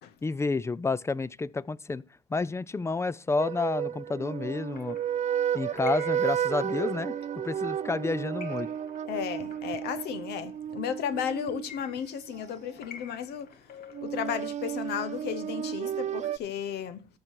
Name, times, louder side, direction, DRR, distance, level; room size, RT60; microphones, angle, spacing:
voice 1, 0.2-2.0 2.3-5.0 5.5-7.1 7.4-8.7, left 3 dB, 15° left, 0.4 m, -30 dB
sound 1, 3.4-12.4 13.9-16.4, right 9 dB, 45° right, 0.5 m, -32 dB
sound 2, 4.5-14.3, left 6 dB, 60° left, 1.6 m, -50 dB
voice 2, 9.1-13.6 14.0-17.1, left 8 dB, 75° left, 0.9 m, -34 dB
13.0 x 6.6 x 4.6 m
cardioid pair, 110°, 17 cm